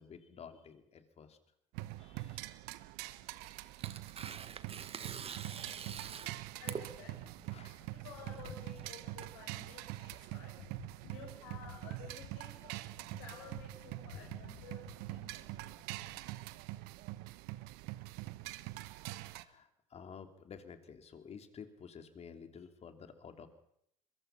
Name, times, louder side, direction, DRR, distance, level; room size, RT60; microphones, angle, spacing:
voice 1, 0.0-1.4 2.0-2.6 5.9-6.0 6.2-6.3 7.5-7.9 19.3-23.5, left 6 dB, 35° left, 8 dB, 3.2 m, -52 dB
Street drummer recorded in Cologne, 1.7-19.4, right 18 dB, 65° right, 1.2 m, -45 dB
Tearing, 3.1-9.9, right 7 dB, 35° right, 1.7 m, -47 dB
voice 2, 5.9-7.4 7.9-16.2, left 6 dB, 70° left, 0 dB, 6.1 m, -52 dB
25.5 x 23.0 x 5.8 m, 0.74 s
hypercardioid pair, 75°, 18 cm